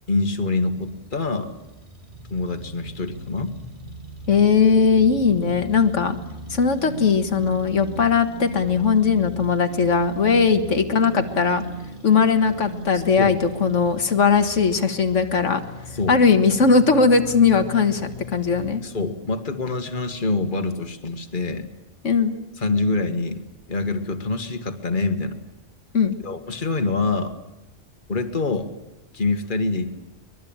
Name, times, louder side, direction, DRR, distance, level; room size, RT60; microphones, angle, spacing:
voice 1, 0.1-1.5 2.3-3.5 10.5-10.6 13.2-13.3 15.9-16.2 18.8-21.7 22.6-25.4 26.2-27.4 28.1-28.7 29.1-29.9, left 3 dB, 40° left, 6 dB, 1.9 m, -25 dB
sound 1, 0.7-18.7, right 1 dB, 40° right, 3.3 m, -37 dB
voice 2, 4.3-6.2 6.5-11.6 12.0-15.6 16.1-18.8 22.0-22.3 25.9-26.2, left 5 dB, 90° left, 7 dB, 1.9 m, -19 dB
24.0 x 21.5 x 8.8 m, 1.0 s
omnidirectional pair, 1.2 m